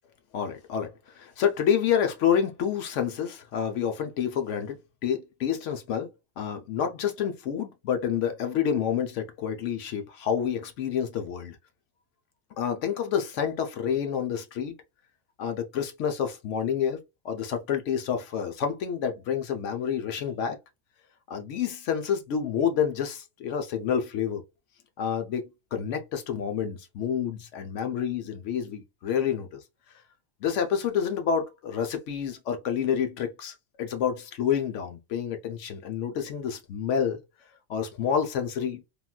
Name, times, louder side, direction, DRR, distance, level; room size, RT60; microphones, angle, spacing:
voice 1, 0.3-0.9 1.1-6.1 6.4-11.6 12.6-14.7 15.4-17.0 17.2-20.6 21.3-24.4 25.0-25.4 25.7-29.6 30.4-37.2 37.7-38.8, left 8 dB, 70° left, 0.9 m, -28 dB
3.7 x 2.4 x 2.2 m
omnidirectional pair, 1.4 m